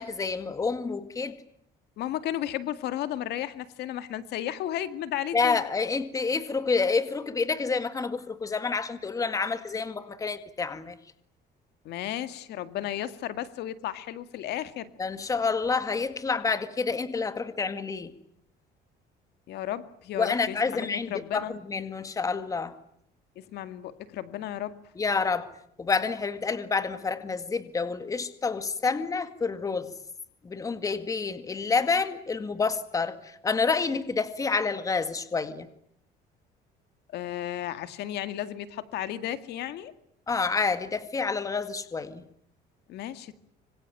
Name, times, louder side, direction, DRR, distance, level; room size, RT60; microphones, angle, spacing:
voice 1, 0.0-1.4 5.3-11.0 15.0-18.1 20.1-22.7 25.0-25.5 25.8-30.0 30.4-35.7 40.3-42.2, left 4 dB, 20° left, 11 dB, 2.0 m, -28 dB
voice 2, 2.0-5.6 11.8-14.9 19.5-21.5 23.4-24.8 37.1-39.9 42.9-43.3, left 12 dB, 65° left, 12 dB, 2.1 m, -34 dB
26.0 x 25.0 x 9.1 m, 0.68 s
cardioid pair, 155°, 18 cm